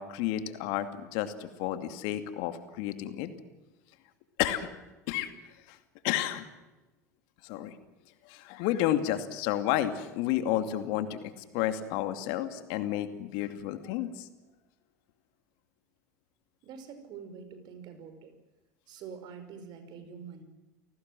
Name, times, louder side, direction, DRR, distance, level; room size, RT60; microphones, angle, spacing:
voice 1, 0.0-3.3 4.4-4.7 5.1-5.3 5.7-5.8 6.0-6.5 7.4-7.8 8.2-14.3, left 12 dB, 60° left, 9 dB, 2.5 m, -31 dB
voice 2, 16.6-18.3 18.9-20.4, right 6 dB, 50° right, 9 dB, 5.4 m, -45 dB
29.5 x 19.0 x 7.8 m, 1.1 s
hypercardioid pair, 80°, 9 cm